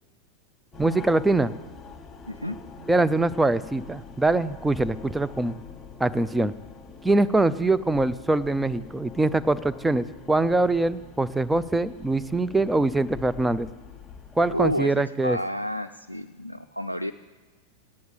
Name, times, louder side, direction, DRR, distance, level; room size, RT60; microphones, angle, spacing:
sound 1, 0.7-14.7, left 5 dB, 15° left, 1.2 m, -45 dB
voice 1, 0.8-1.5 2.9-5.6 6.0-6.5 7.0-13.7 14.4-15.4, right 2 dB, 5° right, 14 dB, 0.4 m, -23 dB
voice 2, 2.3-2.6 14.5-17.1, equal, 90° left, 7 dB, 0.3 m, -30 dB
9.3 x 8.5 x 8.0 m, 1.4 s
figure-of-eight pair, 90°, 0 cm